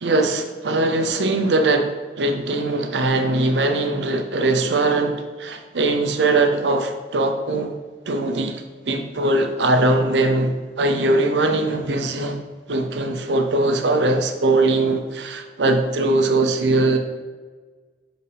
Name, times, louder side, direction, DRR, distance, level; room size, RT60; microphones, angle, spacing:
voice 1, 0.0-7.7 8.1-12.4 12.7-17.0, right 2 dB, 85° right, 6 dB, 0.6 m, -21 dB
6.8 x 4.1 x 3.4 m, 1.4 s
head